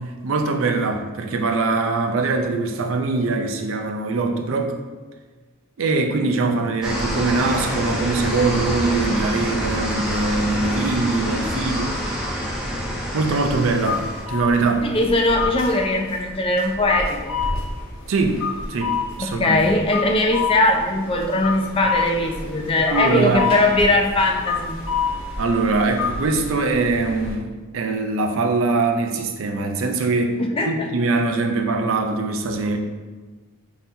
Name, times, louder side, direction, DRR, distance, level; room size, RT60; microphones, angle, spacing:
voice 1, 0.0-4.8 5.8-12.3 13.1-14.0 14.3-14.9 18.1-19.6 22.9-23.5 25.4-30.4 30.6-32.8, right 3 dB, 75° right, 5 dB, 0.5 m, -22 dB
sound 1, 6.8-14.2, equal, 5° right, 0.8 m, -26 dB
sound 2, 13.4-27.4, left 5 dB, 75° left, 1.0 m, -29 dB
voice 2, 14.8-17.4 19.2-24.8 30.4-30.9, left 2 dB, 25° left, 3 dB, 0.4 m, -20 dB
5.5 x 2.8 x 2.7 m, 1.4 s
head